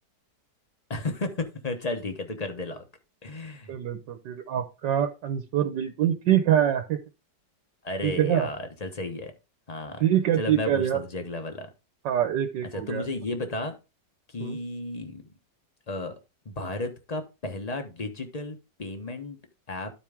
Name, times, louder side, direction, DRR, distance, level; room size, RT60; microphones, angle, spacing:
voice 1, 0.9-2.9 3.2-3.7 7.8-9.3 9.7-10.0 10.4-11.7 12.7-13.7 14.3-15.2 15.9-16.2 16.4-19.4 19.7-19.9, left 2 dB, 30° left, 6 dB, 0.9 m, -33 dB
voice 2, 3.7-7.0 8.0-8.5 10.0-11.0 12.0-13.1 14.4-14.6, right 10 dB, 75° right, 5 dB, 1.5 m, -25 dB
12.5 x 4.5 x 3.5 m, 0.28 s
omnidirectional pair, 1.9 m